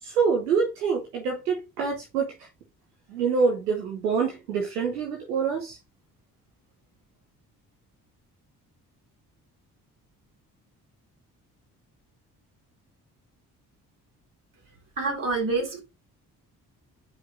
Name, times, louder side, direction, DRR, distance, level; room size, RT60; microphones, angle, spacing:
voice 1, 0.0-2.3 3.1-5.8, right 5 dB, 80° right, 0.9 m, -26 dB
voice 2, 15.0-15.8, right 3 dB, 45° right, 3.4 m, -27 dB
9.4 x 5.0 x 2.5 m
figure-of-eight pair, 45°, 46 cm